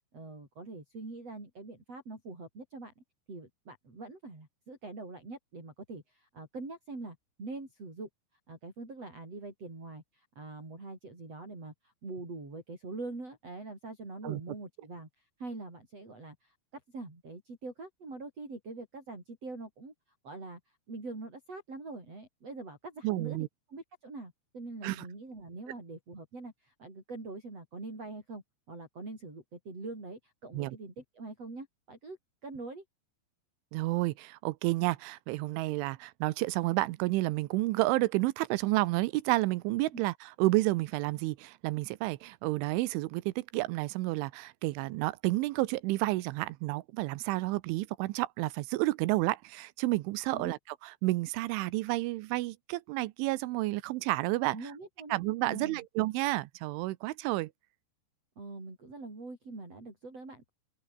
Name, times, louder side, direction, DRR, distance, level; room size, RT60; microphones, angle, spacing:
voice 1, 0.1-8.1 8.5-15.1 15.4-19.9 20.2-20.6 20.9-23.4 23.7-28.4 28.7-32.2 32.4-32.8 39.9-40.0 50.3-50.5 54.5-55.2 55.4-55.8 58.4-60.5, right 3 dB, 30° right, 9.1 m, -44 dB
voice 2, 23.0-23.5 24.8-25.0 30.5-30.8 33.7-54.6 55.1-57.5, right 19 dB, 80° right, 3.2 m, -30 dB
open air
omnidirectional pair, 5.6 m